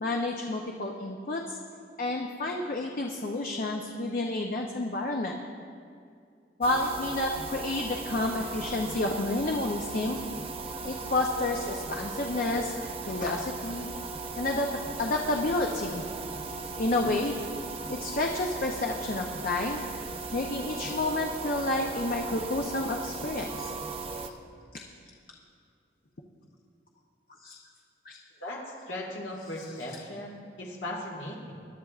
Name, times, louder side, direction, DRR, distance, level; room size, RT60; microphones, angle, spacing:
voice 1, 0.0-1.6 2.0-5.4 6.6-10.2 10.8-12.8 13.1-13.9 14.4-16.0 16.8-17.4 17.9-19.8 20.3-23.7 24.2-24.3 27.4-27.6 28.1-28.2, left 2 dB, 50° left, 1 dB, 0.7 m, -30 dB
sound 1, 6.6-24.3, right 3 dB, 30° right, 0.6 m, -38 dB
voice 2, 28.9-31.5, left 1 dB, 85° left, -3 dB, 1.9 m, -37 dB
21.0 x 11.5 x 2.4 m, 2.3 s
head